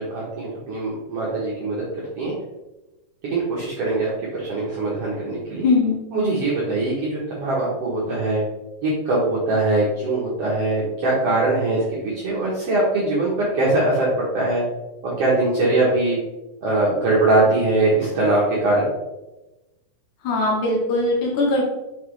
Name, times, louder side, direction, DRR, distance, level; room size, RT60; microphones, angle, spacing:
voice 1, 0.0-1.8 2.2-2.3 3.3-5.6 6.1-8.4 8.8-14.6 15.2-16.2 16.6-18.9, right 2 dB, 60° right, -6 dB, 1.9 m, -22 dB
voice 2, 5.6-6.0 20.2-21.6, left 2 dB, 70° left, -2 dB, 2.6 m, -20 dB
5.8 x 5.3 x 3.2 m, 1.0 s
omnidirectional pair, 3.8 m